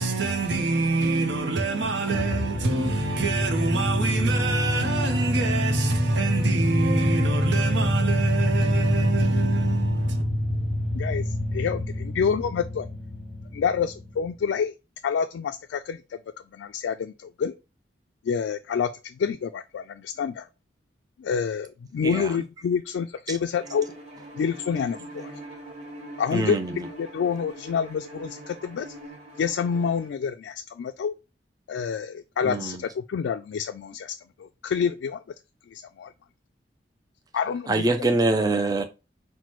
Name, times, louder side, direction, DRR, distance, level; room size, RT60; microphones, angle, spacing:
voice 1, 0.0-10.2, right 3 dB, 80° right, 0.8 m, -26 dB
sound 1, 2.1-14.3, equal, 5° left, 0.9 m, -26 dB
voice 2, 10.9-12.9 13.5-14.7 15.0-16.2 16.5-17.5 18.2-20.5 21.2-23.9 24.3-25.3 26.2-26.6 27.0-28.9 29.4-31.1 31.7-35.2 35.7-36.1 37.3-37.8, left 6 dB, 85° left, 0.3 m, -28 dB
Bowed string instrument, 23.6-30.2, right 1 dB, 35° right, 1.4 m, -43 dB
voice 3, 26.3-26.8 32.4-32.8 37.7-38.8, right 2 dB, 20° right, 0.4 m, -24 dB
5.8 x 2.2 x 3.0 m
head